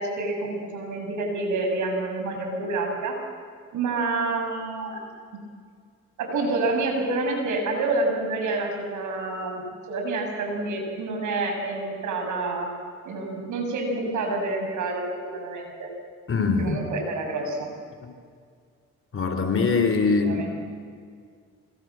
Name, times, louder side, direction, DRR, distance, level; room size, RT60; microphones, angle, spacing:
voice 1, 0.0-3.2 3.7-5.0 5.3-5.4 6.2-9.6 9.9-12.7 13.0-15.9 16.6-17.7 20.2-20.5, right 2 dB, 75° right, 3 dB, 7.8 m, -28 dB
voice 2, 16.3-16.8 19.1-20.5, left 4 dB, 45° left, 7 dB, 3.6 m, -22 dB
28.0 x 25.0 x 7.7 m, 2.1 s
cardioid pair, 90°, 30 cm